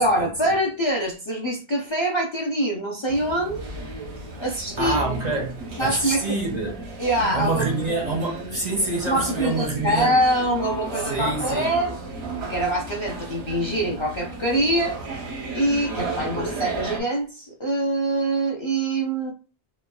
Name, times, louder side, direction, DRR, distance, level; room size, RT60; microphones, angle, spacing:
voice 1, 0.0-3.7 4.4-5.0 5.8-6.3 7.0-7.7 9.0-12.0 12.5-15.0 15.5-19.3, right 1 dB, 45° left, 0.3 m, -24 dB
sound 1, 3.1-17.0, right 2 dB, 90° right, 1.0 m, -34 dB
voice 2, 4.8-6.8 7.3-10.2 11.0-11.7, right 3 dB, 55° right, 0.5 m, -26 dB
3.1 x 2.1 x 2.2 m
omnidirectional pair, 1.1 m